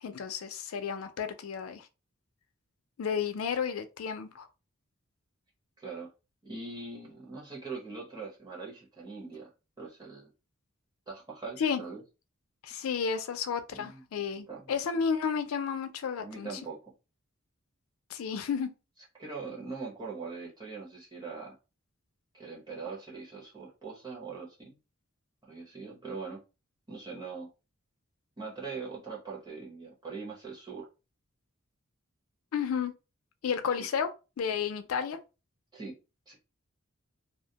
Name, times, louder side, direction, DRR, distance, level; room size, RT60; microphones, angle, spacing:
voice 1, 0.0-1.9 3.0-4.5 11.6-11.8 12.6-16.6 18.1-18.7 32.5-32.9 33.4-34.1 34.4-35.2, left 6 dB, 90° left, 0.4 m, -32 dB
voice 2, 5.8-6.1 6.4-9.5 9.8-10.3 11.1-12.0 13.7-14.0 14.5-14.7 16.2-16.9 19.1-21.5 22.3-24.8 25.4-26.4 26.9-27.5 28.4-30.9 35.7-35.9 36.3-36.4, right 4 dB, 20° right, 1.0 m, -41 dB
2.4 x 2.1 x 2.7 m
head